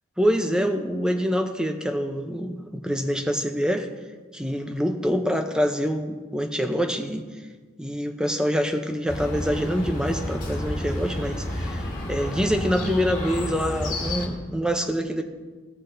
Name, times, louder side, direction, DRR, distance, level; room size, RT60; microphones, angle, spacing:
voice 1, 0.2-3.9 4.3-7.2 7.8-15.2, equal, 5° right, 5 dB, 0.5 m, -25 dB
Chirp tweet, 9.1-14.3, left 1 dB, 40° left, 2.0 m, -30 dB
16.5 x 6.2 x 2.6 m, 1.4 s
head